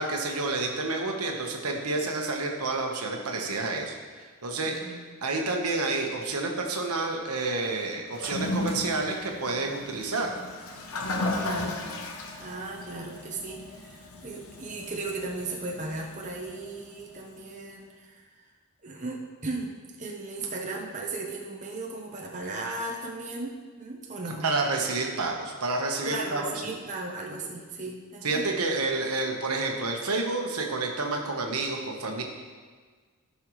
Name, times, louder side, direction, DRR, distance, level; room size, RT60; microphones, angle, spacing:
voice 1, 0.0-3.9 4.4-4.8 5.2-10.3 24.4-26.8 27.3-27.5 28.2-32.2, right 3 dB, 85° right, 1 dB, 1.2 m, -29 dB
voice 2, 4.6-5.0 11.3-11.8 12.4-18.1 18.8-24.5 26.0-28.4, right 2 dB, 35° right, -1 dB, 0.9 m, -36 dB
Toilet flush, 8.1-17.4, left 2 dB, 75° left, 1.0 m, -36 dB
14.5 x 5.6 x 3.1 m, 1.5 s
head